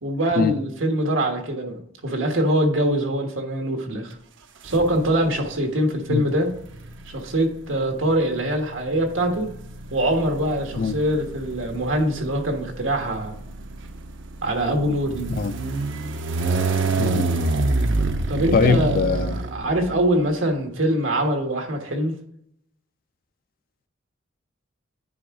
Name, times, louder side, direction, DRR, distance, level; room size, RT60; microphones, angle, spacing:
voice 1, 0.0-4.1 4.6-6.5 7.1-9.5 9.9-13.3 14.4-15.3 18.3-22.1, right 1 dB, 90° right, 1.6 m, -23 dB
sound 1, 4.7-5.4 6.4-20.1, right 3 dB, 65° right, 0.7 m, -28 dB
voice 2, 18.5-19.4, left 5 dB, 50° left, 0.4 m, -22 dB
9.6 x 4.7 x 3.7 m
head